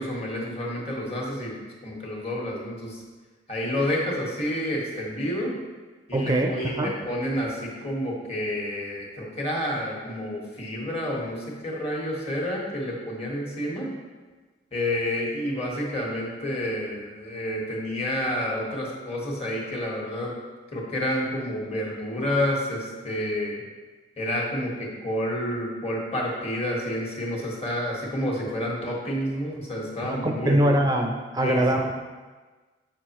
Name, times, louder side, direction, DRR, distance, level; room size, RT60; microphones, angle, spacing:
voice 1, 0.0-1.6 1.8-3.0 3.5-5.5 6.1-13.9 14.7-20.3 20.7-23.6 24.2-30.6 31.4-31.7, left 1 dB, 35° left, -3 dB, 1.5 m, -29 dB
voice 2, 6.1-7.0 30.1-31.9, right 1 dB, 20° right, 3 dB, 0.4 m, -23 dB
7.8 x 6.5 x 3.0 m, 1.3 s
head